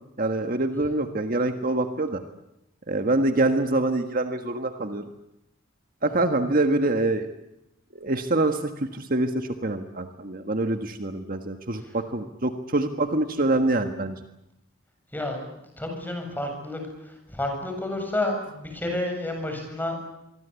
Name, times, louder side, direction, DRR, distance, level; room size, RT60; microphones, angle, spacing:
voice 1, 0.2-2.2 2.9-5.1 6.0-7.3 7.9-14.2, right 2 dB, 45° right, 7 dB, 1.6 m, -25 dB
voice 2, 15.1-20.0, left 1 dB, 10° left, 3 dB, 7.6 m, -30 dB
26.0 x 24.0 x 8.4 m, 0.86 s
head